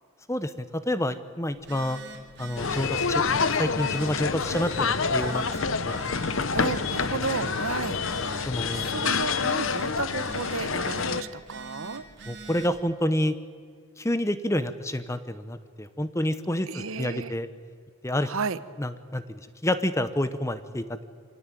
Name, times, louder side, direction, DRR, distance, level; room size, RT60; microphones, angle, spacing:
voice 1, 0.3-2.0 2.4-3.2 3.6-6.0 8.5-8.9 12.3-13.3 14.0-17.5 18.0-18.3 18.8-21.1, left 1 dB, 15° left, 12 dB, 0.8 m, -28 dB
Telephone, 1.5-12.8, right 3 dB, 50° right, 2.8 m, -44 dB
sound 1, 2.6-11.2, left 5 dB, 65° left, 0.8 m, -27 dB
voice 2, 6.5-8.4 8.7-12.0 16.7-17.3 18.3-18.6, right 4 dB, 70° right, 14 dB, 0.9 m, -33 dB
26.0 x 17.5 x 9.1 m, 2.1 s
head